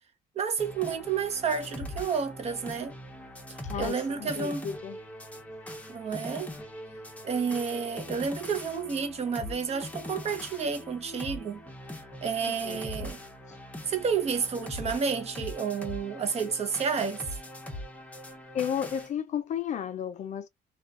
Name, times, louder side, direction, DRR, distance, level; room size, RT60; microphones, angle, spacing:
voice 1, 0.4-2.9 3.8-4.6 5.9-6.5 7.2-11.6 12.2-13.2 13.9-17.2, right 6 dB, 40° right, 0.7 m, -30 dB
sound 1, 0.6-19.1, left 1 dB, 10° left, 0.7 m, -42 dB
voice 2, 3.6-5.0 12.4-12.9 18.5-20.5, left 8 dB, 45° left, 0.4 m, -33 dB
2.3 x 2.3 x 2.4 m
cardioid pair, 110°, 17 cm